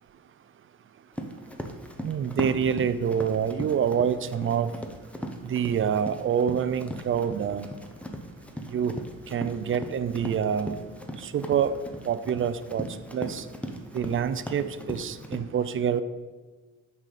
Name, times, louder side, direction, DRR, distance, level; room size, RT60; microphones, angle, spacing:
Run, 1.1-15.4, equal, 5° left, 0.8 m, -38 dB
voice 1, 2.0-4.7 5.4-7.7 8.7-9.0 9.3-10.7 11.2-11.8 12.1-12.9 13.1-13.5 13.9-16.0, right 8 dB, 45° right, 13 dB, 0.5 m, -26 dB
10.0 x 4.2 x 4.9 m, 1.3 s
cardioid pair, 90°, 30 cm